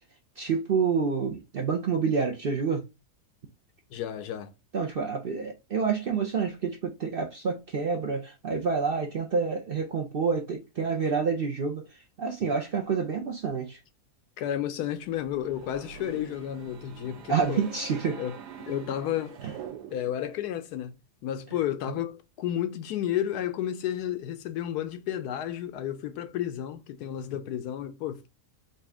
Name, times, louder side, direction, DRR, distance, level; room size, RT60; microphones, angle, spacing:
voice 1, 0.4-2.8 4.7-13.8 17.3-18.2 19.4-19.5, right 5 dB, 55° right, 0.6 m, -28 dB
voice 2, 3.9-4.5 14.4-17.6 18.2-19.4 19.9-28.3, left 11 dB, 85° left, 1.1 m, -32 dB
sound 1, 15.0-20.3, right 7 dB, 85° right, 1.3 m, -44 dB
4.2 x 2.6 x 3.4 m
omnidirectional pair, 1.7 m